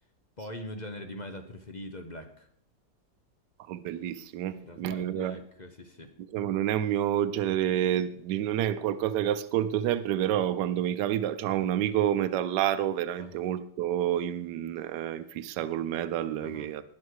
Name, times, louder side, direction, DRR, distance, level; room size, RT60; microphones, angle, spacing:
voice 1, 0.4-2.5 4.6-6.1 13.2-13.4 16.4-16.7, left 1 dB, 30° left, 7 dB, 0.9 m, -42 dB
voice 2, 3.6-5.4 6.3-16.8, right 11 dB, 75° right, 11 dB, 1.2 m, -29 dB
19.0 x 6.4 x 4.8 m, 0.67 s
omnidirectional pair, 1.9 m